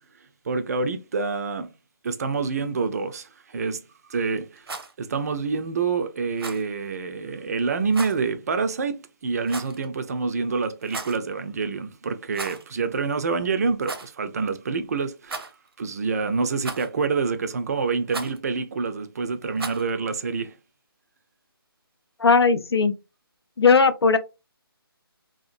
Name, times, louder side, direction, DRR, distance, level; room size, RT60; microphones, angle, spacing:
voice 1, 0.5-1.7 2.0-3.8 4.1-4.7 5.0-9.0 9.2-15.5 15.8-20.5, right 4 dB, 40° right, 0.4 m, -27 dB
Rattle, 4.5-4.9 6.4-6.7 7.9-8.2 9.5-9.9 10.8-11.2 12.3-12.7 13.0-13.1 13.8-14.1 15.2-15.7 16.6-17.0 18.1-18.4 19.6-19.9, right 3 dB, 75° right, 0.7 m, -35 dB
voice 2, 22.2-22.9 23.6-24.2, left 5 dB, 85° left, 0.5 m, -18 dB
2.7 x 2.4 x 2.5 m
figure-of-eight pair, 150°, 13 cm